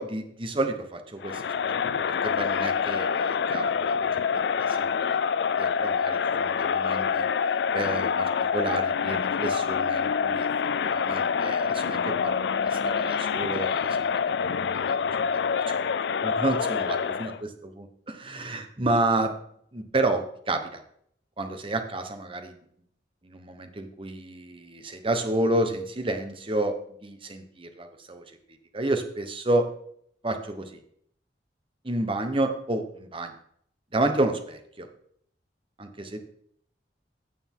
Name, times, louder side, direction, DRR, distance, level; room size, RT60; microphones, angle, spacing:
voice 1, 0.0-1.7 2.1-4.4 4.7-7.3 7.7-10.5 10.8-15.0 15.7-15.8 16.2-19.3 19.7-20.8 21.4-22.5 23.2-26.8 27.0-28.2 28.7-29.7 30.2-30.8 31.8-33.3 33.9-34.9 35.8-36.2, right 2 dB, 30° right, 7 dB, 1.1 m, -30 dB
Crowd, 1.2-17.4, left 6 dB, 65° left, 0.4 m, -26 dB
15.0 x 6.9 x 3.7 m, 0.67 s
head